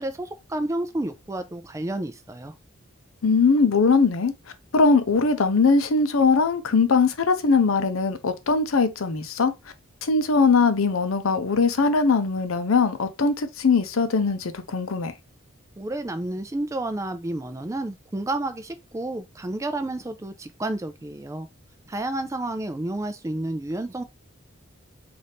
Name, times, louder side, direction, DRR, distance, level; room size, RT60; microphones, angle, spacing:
voice 1, 0.0-2.5 15.8-21.5 21.9-24.0, right 1 dB, 15° right, 0.3 m, -30 dB
voice 2, 3.2-4.3 4.7-9.5 10.0-15.1, left 4 dB, 80° left, 0.6 m, -21 dB
4.0 x 2.5 x 3.4 m
head